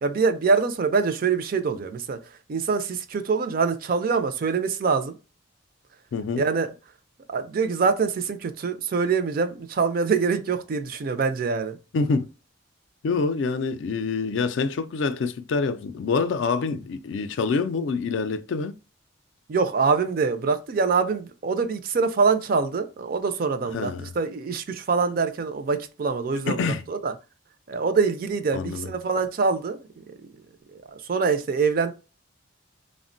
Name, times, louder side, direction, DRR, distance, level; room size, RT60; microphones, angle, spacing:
voice 1, 0.0-2.2 2.5-5.1 6.4-6.7 7.3-11.8 19.5-27.1 27.7-29.9 30.7-31.9, right 5 dB, 45° right, 0.4 m, -24 dB
voice 2, 6.1-6.4 11.9-12.3 13.0-18.7 23.7-24.1 26.5-26.8 28.5-28.9, left 4 dB, 65° left, 0.3 m, -26 dB
3.5 x 2.1 x 2.5 m
head